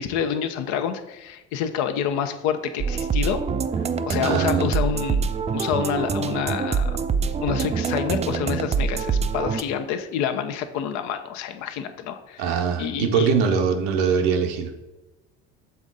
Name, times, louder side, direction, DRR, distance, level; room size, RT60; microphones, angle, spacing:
voice 1, 0.0-3.4 4.1-7.0 7.4-13.3, left 8 dB, 75° left, 8 dB, 0.7 m, -28 dB
sound 1, 2.8-9.6, right 5 dB, 25° right, 0.4 m, -25 dB
voice 2, 4.2-4.7 12.4-14.7, right 6 dB, 80° right, 5 dB, 0.9 m, -22 dB
6.9 x 3.7 x 3.9 m, 1.1 s
supercardioid pair, 75°, 29 cm